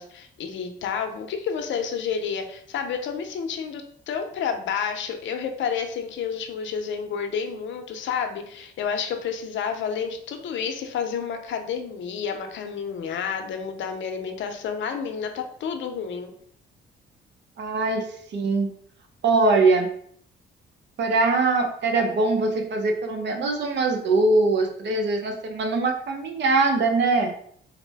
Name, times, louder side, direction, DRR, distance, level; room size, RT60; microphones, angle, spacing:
voice 1, 0.0-16.3, left 6 dB, 70° left, 5 dB, 0.6 m, -30 dB
voice 2, 17.6-18.0 18.3-18.7 19.2-19.9 21.0-27.3, right 3 dB, 60° right, 3 dB, 0.7 m, -22 dB
3.9 x 2.1 x 3.3 m, 0.62 s
cardioid pair, 90°, 20 cm